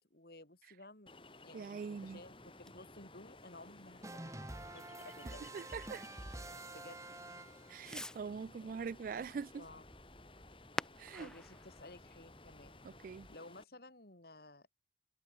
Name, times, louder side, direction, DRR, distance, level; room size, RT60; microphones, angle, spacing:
voice 1, 0.1-1.1 1.4-5.6 6.7-7.1 8.6-8.7 9.1-9.8 11.2-12.9 13.3-14.7, left 2 dB, 60° left, 4.2 m, -55 dB
Ocean, 1.1-13.6, left 2 dB, 30° left, 5.0 m, -58 dB
voice 2, 1.5-2.2 5.5-6.0 7.7-9.6 11.0-11.3 12.8-13.3, right 5 dB, 50° right, 0.3 m, -43 dB
Fireworks, 2.0-13.4, left 1 dB, 5° left, 1.1 m, -52 dB
sound 1, 4.0-7.9, right 2 dB, 15° right, 1.6 m, -48 dB
head